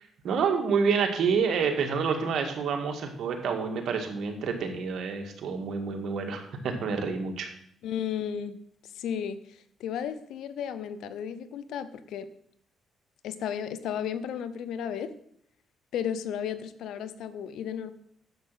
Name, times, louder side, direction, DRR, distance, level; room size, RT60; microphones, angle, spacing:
voice 1, 0.2-7.5, right 5 dB, 65° right, 4 dB, 1.9 m, -28 dB
voice 2, 7.8-8.6 8.9-9.4 9.8-12.3 13.2-15.1 15.9-17.9, left 8 dB, 80° left, 13 dB, 0.7 m, -33 dB
10.5 x 7.2 x 5.7 m, 0.68 s
cardioid pair, 90°, 0 cm